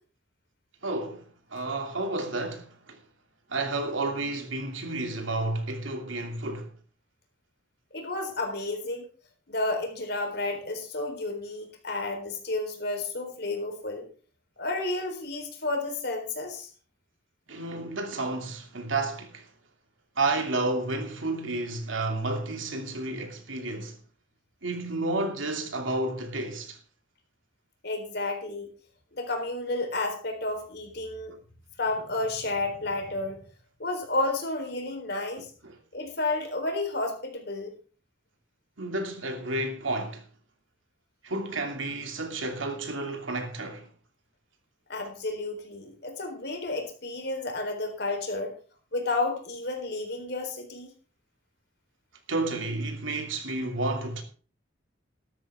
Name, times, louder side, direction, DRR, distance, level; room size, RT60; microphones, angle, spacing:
voice 1, 0.8-3.0 3.5-6.7 17.5-19.5 20.2-24.0 24.6-26.8 35.6-35.8 38.8-40.2 41.2-43.9 52.3-54.2, right 2 dB, 85° right, 2.6 m, -31 dB
voice 2, 7.9-9.1 9.5-14.1 14.6-16.7 27.8-28.7 29.2-31.4 31.8-33.4 33.8-35.5 35.9-37.7 44.9-48.6 48.9-50.9, left 2 dB, 55° left, 3.9 m, -31 dB
13.5 x 12.5 x 3.6 m
head